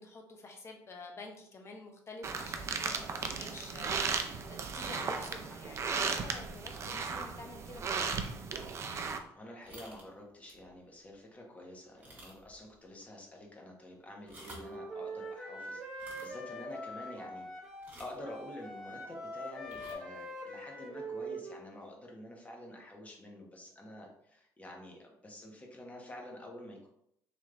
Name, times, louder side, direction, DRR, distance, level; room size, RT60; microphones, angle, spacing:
voice 1, 0.0-7.8, left 3 dB, 40° left, 2 dB, 0.9 m, -49 dB
sound 1, 2.2-9.2, right 5 dB, 40° right, 0.5 m, -36 dB
voice 2, 9.3-17.5 18.0-26.9, left 1 dB, 20° left, 0 dB, 1.2 m, -48 dB
sound 2, 9.6-10.1 10.5-10.7 11.1-11.2 12.0-12.6 12.9-13.0 14.1-14.8 15.9-16.3 17.8-18.2 19.6-19.9, right 1 dB, 25° right, 1.5 m, -52 dB
Wind instrument woodwind instrument, 14.4-17.9 18.2-21.7, right 1 dB, 10° right, 1.1 m, -43 dB
3.5 x 3.0 x 3.8 m, 0.74 s
cardioid pair, 100°, 7 cm